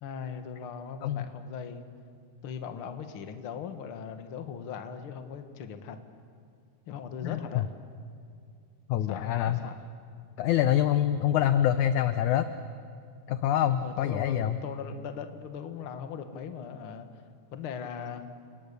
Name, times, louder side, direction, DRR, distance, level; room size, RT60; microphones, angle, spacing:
voice 1, 0.0-1.9 2.4-6.0 6.9-7.7 9.1-9.7 13.8-17.1 17.5-18.2, left 7 dB, 50° left, 7 dB, 1.7 m, -39 dB
voice 2, 7.2-7.6 8.9-9.6 10.4-12.5 13.3-14.6, left 11 dB, 75° left, 10 dB, 1.8 m, -25 dB
29.5 x 28.0 x 6.8 m, 2.3 s
omnidirectional pair, 4.3 m